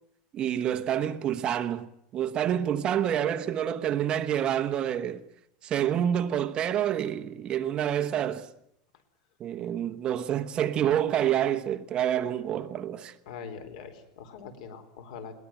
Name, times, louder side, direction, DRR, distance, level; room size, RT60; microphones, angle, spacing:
voice 1, 0.3-1.9 2.1-5.2 5.6-8.5 9.4-13.1, right 10 dB, 25° right, 1.1 m, -28 dB
voice 2, 13.3-15.3, left 6 dB, 70° left, 4.1 m, -42 dB
22.0 x 18.5 x 9.0 m
supercardioid pair, 170°, 4 cm